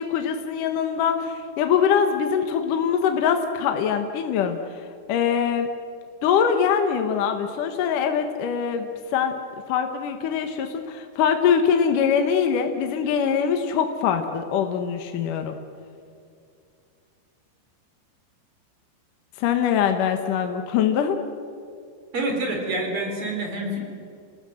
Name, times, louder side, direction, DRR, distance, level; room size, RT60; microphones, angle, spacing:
voice 1, 0.0-4.6 5.1-5.7 6.2-8.9 9.1-9.4 9.7-15.6 19.4-21.2, left 7 dB, 65° left, 6 dB, 2.3 m, -23 dB
voice 2, 22.1-23.8, right 2 dB, 30° right, 2 dB, 4.5 m, -27 dB
29.5 x 18.5 x 7.8 m, 2.4 s
omnidirectional pair, 5.0 m